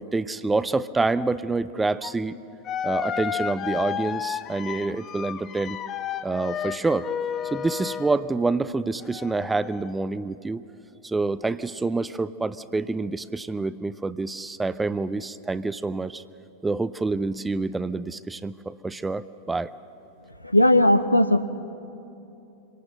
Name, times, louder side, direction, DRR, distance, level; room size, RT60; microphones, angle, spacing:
voice 1, 0.0-2.4 2.8-5.8 6.2-7.1 7.5-10.6 11.0-16.2 16.6-19.7, right 3 dB, 10° right, 16 dB, 0.5 m, -27 dB
sound 1, 2.0-2.1 2.7-8.3 9.0-9.9, left 8 dB, 30° left, 0.8 m, -32 dB
voice 2, 20.4-21.4, left 1 dB, 85° left, 10 dB, 0.8 m, -17 dB
26.0 x 18.5 x 6.6 m, 2.9 s
figure-of-eight pair, 90°, 0 cm